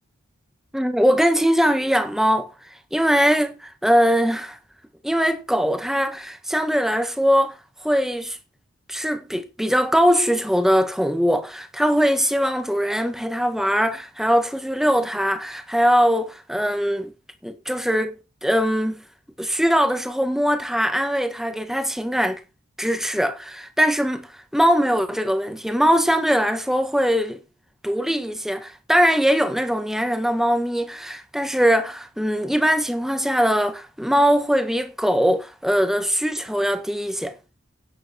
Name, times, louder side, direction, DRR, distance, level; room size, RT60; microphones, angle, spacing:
voice 1, 0.7-2.5 2.9-4.6 5.0-7.5 7.8-8.4 8.9-17.1 17.4-19.0 19.4-22.4 22.8-24.3 24.5-27.4 27.8-37.4, equal, ahead, 1.6 m, -21 dB
11.5 x 9.4 x 4.4 m
head